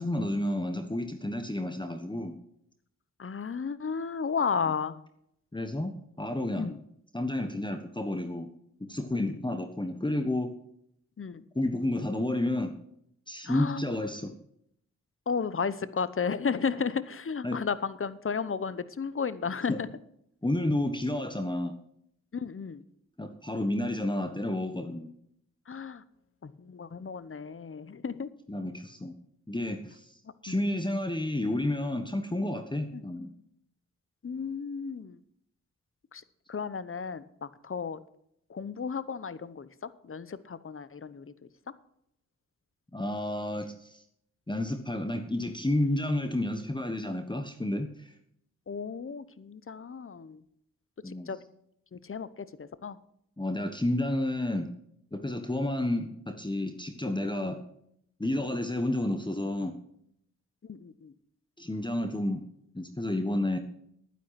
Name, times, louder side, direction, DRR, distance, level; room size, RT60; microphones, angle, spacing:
voice 1, 0.0-2.3 5.5-5.9 6.2-6.7 7.1-8.5 8.9-10.5 11.5-12.7 13.3-14.3 17.4-17.6 19.7-19.8 20.4-21.7 23.2-25.1 28.5-29.1 29.5-33.3 42.9-44.0 44.5-48.1 51.0-51.3 53.4-54.7 55.1-57.6 58.2-59.7 61.6-62.4 62.7-63.6, left 1 dB, 15° left, 7 dB, 1.3 m, -31 dB
voice 2, 3.2-5.0 6.5-6.8 9.1-9.4 11.2-11.4 13.4-14.0 15.3-19.9 22.3-22.8 25.7-26.0 26.4-28.3 30.2-30.6 32.9-33.1 34.2-35.2 36.1-38.0 38.5-41.5 48.7-50.4 51.0-51.4 51.9-53.0 57.4-57.5 60.6-61.1, left 6 dB, 40° left, 16 dB, 1.0 m, -34 dB
11.5 x 9.9 x 5.9 m, 0.72 s
cardioid pair, 55°, 31 cm